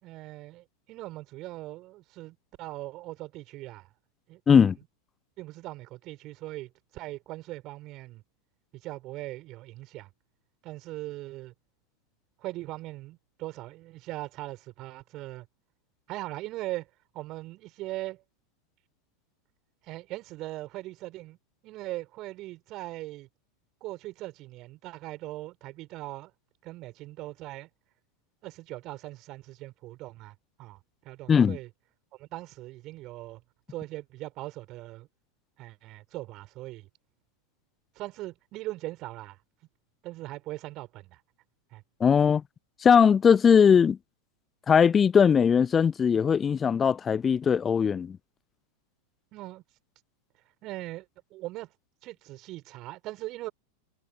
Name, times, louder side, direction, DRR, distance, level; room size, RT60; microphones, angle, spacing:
voice 1, 0.0-3.9 4.3-4.7 5.4-8.2 8.7-10.1 10.6-11.5 12.4-15.5 16.1-16.9 17.1-18.2 19.8-21.4 21.6-23.3 23.8-26.3 26.6-27.7 28.4-31.7 32.2-33.4 33.7-35.1 35.6-36.9 37.9-39.4 40.0-41.2 41.7-41.8 49.3-49.6 50.6-51.1 51.3-51.7 52.0-53.5, right 18 dB, 35° right, 6.1 m, -40 dB
voice 2, 4.5-4.8 31.3-31.6 42.0-42.4 42.8-44.0 44.7-48.2, left 7 dB, 20° left, 0.8 m, -20 dB
figure-of-eight pair, 90°, 0 cm